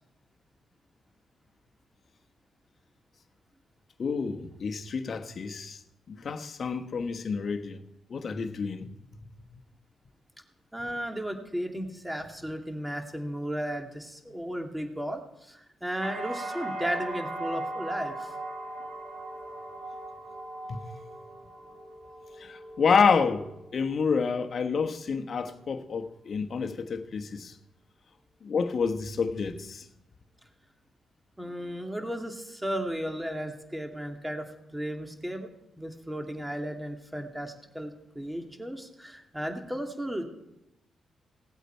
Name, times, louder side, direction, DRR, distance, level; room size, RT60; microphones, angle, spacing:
voice 1, 4.0-5.8 6.1-7.8 8.1-8.9 20.7-20.8 22.4-27.6 28.4-29.8, left 5 dB, 55° left, 1.1 m, -28 dB
voice 2, 10.7-18.3 31.4-34.5 34.7-35.5 35.8-40.2, equal, 10° right, 2.3 m, -35 dB
sound 1, 16.0-23.9 24.3-25.0, right 2 dB, 65° right, 3.3 m, -39 dB
18.5 x 8.1 x 4.5 m
supercardioid pair, 55°, 0 cm